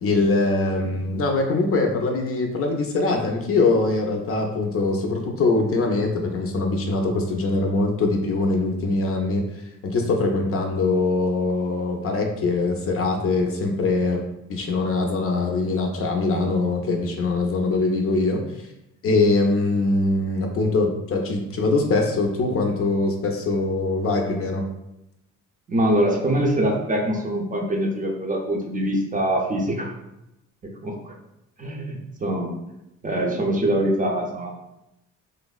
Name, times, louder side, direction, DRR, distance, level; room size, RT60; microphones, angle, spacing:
voice 1, 0.0-9.4 9.8-14.2 14.5-18.4 19.0-24.6, left 3 dB, 50° left, 2 dB, 0.5 m, -22 dB
voice 2, 25.7-29.9 30.6-31.1 31.6-32.5 33.0-34.5, right 1 dB, 25° right, 0 dB, 0.5 m, -24 dB
3.2 x 2.0 x 2.3 m, 0.88 s
cardioid pair, 90°, 30 cm